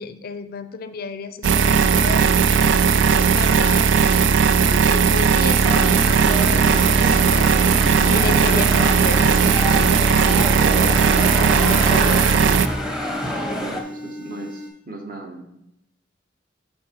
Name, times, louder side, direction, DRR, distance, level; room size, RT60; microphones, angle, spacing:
voice 1, 0.0-2.3 2.6-4.2 4.6-11.0 11.3-12.1, left 4 dB, 50° left, 10 dB, 0.4 m, -32 dB
sound 1, 1.4-14.7, equal, 30° right, 2.7 m, -36 dB
sound 2, 1.4-12.7, right 6 dB, 70° right, 0.3 m, -17 dB
sound 3, 5.6-13.8, left 1 dB, 5° right, 0.8 m, -27 dB
voice 2, 13.2-15.7, right 2 dB, 50° right, 2 dB, 1.1 m, -37 dB
12.0 x 4.6 x 2.9 m, 0.83 s
head